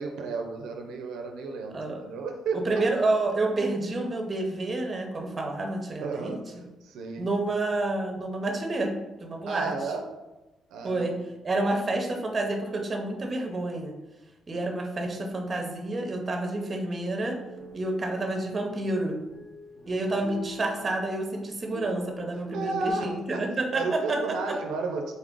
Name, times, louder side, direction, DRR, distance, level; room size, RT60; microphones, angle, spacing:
voice 1, 0.0-2.8 6.0-7.3 9.5-10.0 10.7-11.2 20.1-20.3 22.5-23.2 23.7-25.1, right 4 dB, 90° right, 2 dB, 0.4 m, -33 dB
voice 2, 2.7-6.4 7.2-8.9 9.2-9.7 10.8-11.1 11.4-13.9 14.5-17.4 17.7-19.2 19.9-24.5, right 2 dB, 30° right, 3 dB, 0.7 m, -29 dB
sound 1, 17.2-22.9, left 1 dB, 40° left, 1.0 m, -45 dB
3.9 x 2.4 x 3.6 m, 1.0 s
cardioid pair, 90°, 0 cm